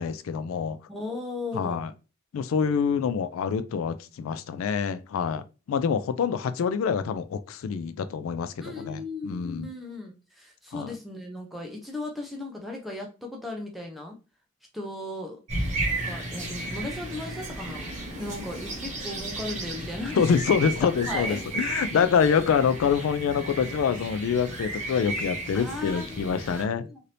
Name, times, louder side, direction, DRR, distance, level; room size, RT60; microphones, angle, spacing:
voice 1, 0.0-0.8 1.5-1.9 2.3-9.7 10.7-10.9 20.2-26.9, left 6 dB, 80° left, 0.3 m, -26 dB
voice 2, 0.9-1.9 8.6-14.2 14.7-15.4 16.0-20.2 20.8-22.4 25.5-27.0, left 2 dB, ahead, 0.5 m, -37 dB
sound 1, 15.5-26.6, right 2 dB, 35° right, 1.0 m, -34 dB
2.8 x 2.6 x 3.2 m
head